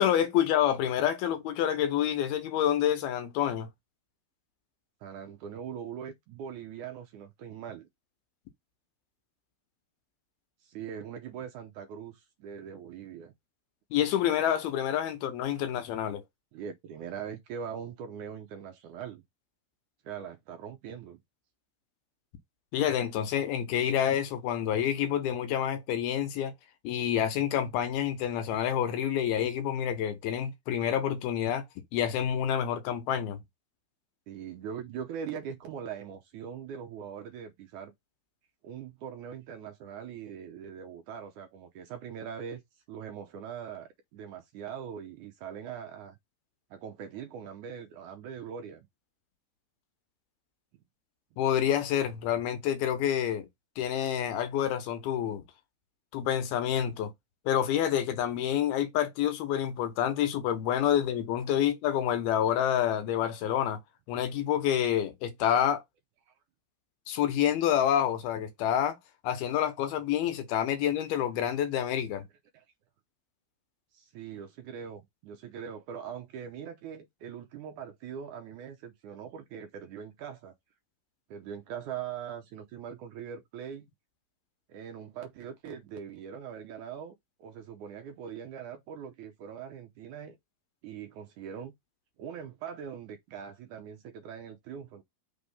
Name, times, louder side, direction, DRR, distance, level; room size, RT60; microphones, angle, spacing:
voice 1, 0.0-3.7 13.9-16.2 22.7-26.5 26.8-31.7 31.9-33.4 51.4-53.5 53.8-55.4 56.1-57.1 57.5-63.8 64.1-65.8 67.1-69.0 69.2-72.3, left 10 dB, 85° left, 3.1 m, -28 dB
voice 2, 5.0-7.9 10.6-13.3 16.5-19.2 20.0-21.2 34.3-37.9 38.6-42.6 42.9-46.2 46.7-48.9 66.3-66.4 72.5-72.6 73.9-80.5 81.3-83.9 84.7-90.4 90.8-91.7 92.2-95.0, right 8 dB, 70° right, 2.0 m, -41 dB
6.2 x 3.3 x 5.5 m
omnidirectional pair, 4.3 m